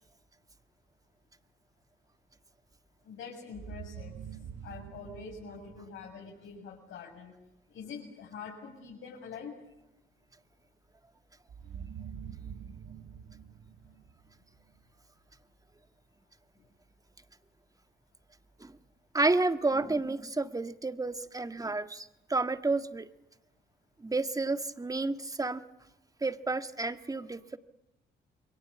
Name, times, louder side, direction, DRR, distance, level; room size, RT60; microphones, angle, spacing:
voice 1, 3.0-4.2 4.6-7.4 7.7-9.6, left 5 dB, 80° left, -1 dB, 7.2 m, -45 dB
sound 1, 3.5-6.5 11.5-14.7, right 8 dB, 65° right, 2.0 m, -46 dB
voice 2, 19.1-23.1 24.0-25.6 26.2-27.6, right 3 dB, 15° right, 9 dB, 1.7 m, -30 dB
28.5 x 23.0 x 8.6 m, 0.90 s
cardioid pair, 90°, 20 cm